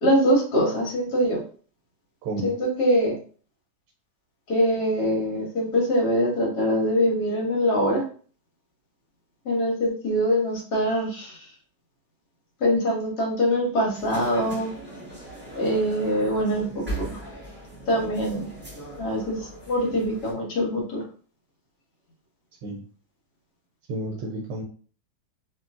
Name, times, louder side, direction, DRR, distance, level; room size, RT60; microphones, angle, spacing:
voice 1, 0.0-1.4 2.4-3.1 4.5-8.0 9.4-11.4 12.6-14.7 15.5-17.2 17.9-18.5 19.0-19.4 19.7-21.0, equal, 65° left, -1 dB, 1.5 m, -23 dB
voice 2, 2.2-2.5 22.6-22.8 23.9-24.6, right 1 dB, 80° right, 0 dB, 1.2 m, -31 dB
sound 1, 13.9-20.3, right 1 dB, 10° right, 0.9 m, -38 dB
3.0 x 2.6 x 2.4 m, 0.42 s
omnidirectional pair, 1.9 m